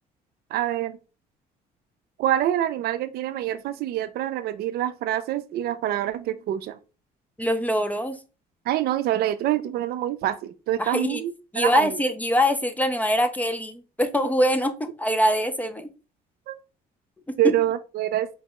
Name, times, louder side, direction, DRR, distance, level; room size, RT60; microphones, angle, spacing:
voice 1, 0.5-1.0 2.2-6.8 8.7-12.0 16.5-16.6 17.4-18.3, right 12 dB, 65° right, 0.4 m, -26 dB
voice 2, 7.4-8.2 10.8-11.2 11.5-15.9 17.4-17.5, equal, 10° left, 0.4 m, -23 dB
4.5 x 2.2 x 2.8 m
cardioid pair, 110°, 17 cm